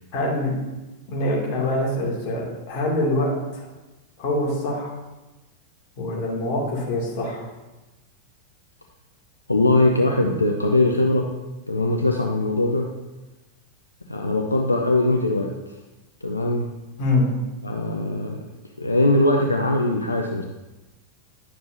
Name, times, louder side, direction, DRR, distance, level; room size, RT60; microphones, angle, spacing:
voice 1, 0.1-0.5 1.1-3.7 4.2-4.9 6.0-7.4 17.0-17.3, left 1 dB, 45° left, -4 dB, 2.3 m, -24 dB
voice 2, 9.5-11.3 11.7-12.9 14.1-15.5 16.2-16.7 17.6-18.4 18.8-20.4, left 2 dB, 80° left, 2 dB, 0.5 m, -21 dB
9.9 x 6.6 x 2.7 m, 1.1 s
figure-of-eight pair, 90°, 0 cm